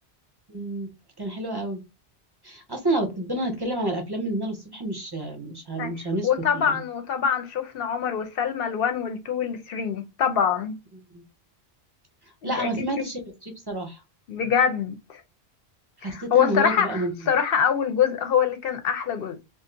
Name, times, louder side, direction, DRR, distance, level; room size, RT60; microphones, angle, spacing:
voice 1, 0.5-0.9 1.2-1.8 2.4-6.3 6.5-6.8 11.1-11.2 12.4-14.0 16.0-17.3, right 1 dB, 30° right, 0.5 m, -29 dB
voice 2, 6.2-10.8 12.4-12.7 14.3-15.2 16.0-19.4, left 7 dB, 65° left, 0.8 m, -24 dB
2.5 x 2.1 x 3.7 m
omnidirectional pair, 1.1 m